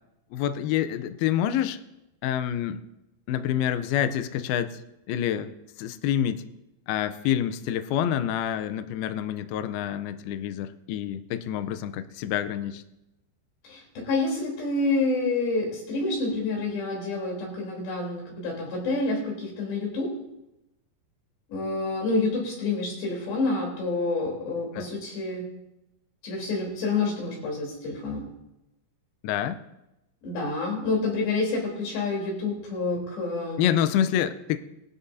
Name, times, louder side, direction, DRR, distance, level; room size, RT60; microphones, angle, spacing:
voice 1, 0.3-1.8 2.2-2.8 3.3-4.8 5.1-5.5 5.8-6.4 6.9-12.8 24.7-24.9 29.2-29.6 33.6-34.6, left 10 dB, 90° left, 9 dB, 2.2 m, -27 dB
voice 2, 13.6-20.1 21.5-25.5 26.2-28.3 30.2-33.6, left 3 dB, 65° left, -2 dB, 5.8 m, -28 dB
21.0 x 12.5 x 2.8 m, 0.92 s
omnidirectional pair, 5.3 m